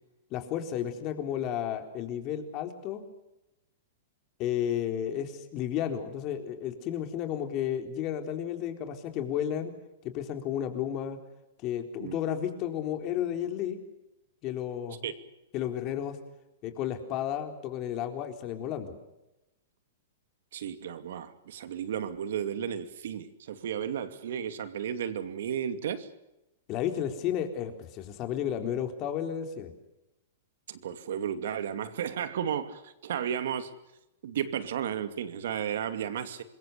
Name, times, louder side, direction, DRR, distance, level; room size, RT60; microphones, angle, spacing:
voice 1, 0.3-3.0 4.4-9.7 10.0-11.2 11.6-13.8 14.4-15.1 15.5-16.2 16.6-18.9 26.7-29.7, left 10 dB, 35° left, 6 dB, 4.0 m, -32 dB
voice 2, 20.5-26.1 30.7-33.7 34.2-36.4, right 9 dB, 70° right, 10 dB, 2.6 m, -33 dB
26.0 x 22.0 x 6.9 m, 0.92 s
hypercardioid pair, 140°, 0 cm